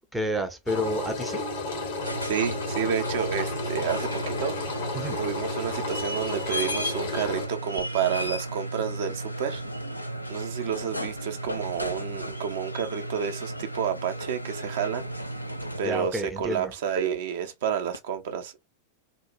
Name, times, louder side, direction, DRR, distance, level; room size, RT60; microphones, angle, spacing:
voice 1, 0.1-1.4 4.9-5.2 15.8-16.7, equal, 5° right, 0.5 m, -30 dB
Engine, 0.7-7.5, left 3 dB, 60° left, 0.9 m, -32 dB
sound 1, 1.9-16.2 17.9-18.0, right 1 dB, 85° left, 0.4 m, -34 dB
voice 2, 2.0-4.5 5.2-9.6 10.3-15.1 15.8-18.7, right 8 dB, 55° right, 0.5 m, -30 dB
3.0 x 2.1 x 2.3 m
figure-of-eight pair, 90°, 0 cm